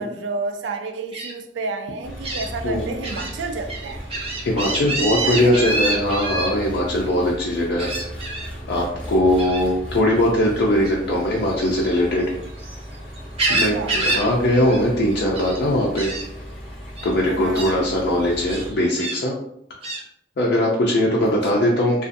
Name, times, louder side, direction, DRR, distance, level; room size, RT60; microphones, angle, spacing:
voice 1, 0.0-4.0 4.8-5.8 13.5-13.9 17.2-17.7, right 3 dB, 75° right, 6 dB, 0.4 m, -31 dB
Gull seagull, 1.1-1.3 2.2-2.5 3.0-3.3 3.7-6.5 7.8-8.5 9.4-9.7 11.5-12.8 13.1-14.3 14.5-14.8 15.1-15.6 16.0-16.2 17.0-17.1 17.5-17.7 18.5-19.2 19.8-20.0, right 2 dB, 35° right, 0.7 m, -26 dB
Engine, 2.0-18.7, equal, 5° left, 0.6 m, -36 dB
voice 2, 4.4-7.9 8.7-12.2 13.5-16.1 17.0-19.3 20.4-22.1, left 1 dB, 60° left, -3 dB, 0.4 m, -20 dB
2.5 x 2.4 x 2.5 m, 0.76 s
head